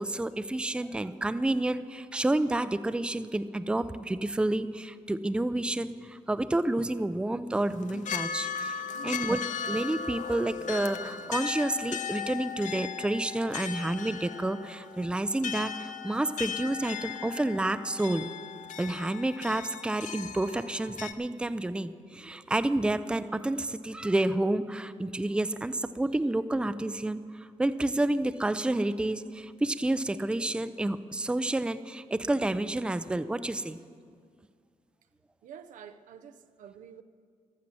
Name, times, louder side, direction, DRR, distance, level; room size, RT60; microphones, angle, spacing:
voice 1, 0.0-18.3 18.8-33.8, right 1 dB, 10° right, 13 dB, 0.5 m, -30 dB
sound 1, 7.6-21.1, left 7 dB, 75° left, 0.6 m, -37 dB
voice 2, 9.0-9.4 35.4-37.0, right 8 dB, 85° right, 9 dB, 0.7 m, -49 dB
12.0 x 7.4 x 9.8 m, 2.1 s
cardioid pair, 80°, 13 cm